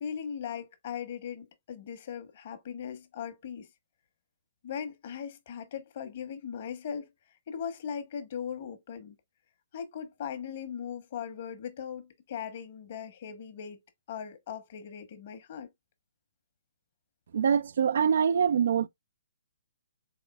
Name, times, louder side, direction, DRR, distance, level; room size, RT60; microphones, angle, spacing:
voice 1, 0.0-3.7 4.6-9.2 9.7-13.8 14.1-15.7, left 7 dB, 50° left, 1.1 m, -39 dB
voice 2, 17.3-18.9, right 7 dB, 65° right, 0.3 m, -24 dB
4.2 x 3.6 x 2.3 m
hypercardioid pair, 135°, 0 cm